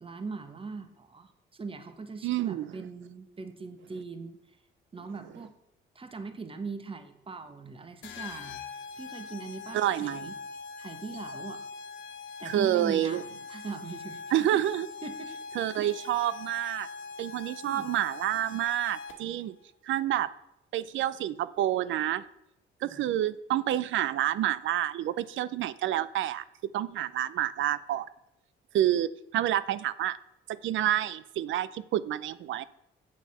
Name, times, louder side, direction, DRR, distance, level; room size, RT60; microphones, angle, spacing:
voice 1, 0.0-4.6 4.9-5.5 5.9-8.6 9.0-10.4 10.8-11.6 12.4-13.2 13.5-14.6 15.0-15.6 16.2-16.3 17.7-18.0 22.8-23.0, right 4 dB, 25° right, 8 dB, 1.2 m, -41 dB
voice 2, 2.2-2.8 9.7-10.3 12.5-13.2 14.3-14.9 15.6-16.9 17.2-19.6 19.8-20.3 20.7-22.2 22.8-26.4 26.7-28.1 28.7-30.2 30.5-32.7, right 12 dB, 75° right, 17 dB, 0.5 m, -28 dB
sound 1, 8.0-19.4, left 5 dB, 75° left, 1.4 m, -42 dB
8.6 x 7.1 x 5.5 m, 0.85 s
cardioid pair, 90°, 20 cm